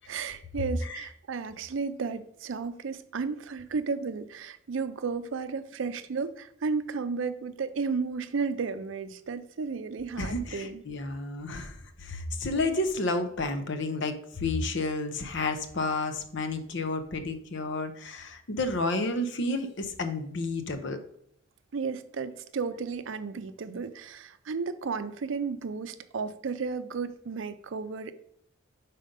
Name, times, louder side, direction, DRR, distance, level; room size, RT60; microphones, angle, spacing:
voice 1, 0.1-10.8 21.7-28.1, right 5 dB, 70° right, 12 dB, 0.5 m, -33 dB
voice 2, 10.2-21.0, left 2 dB, 65° left, 8 dB, 0.7 m, -31 dB
5.1 x 4.2 x 5.2 m, 0.70 s
head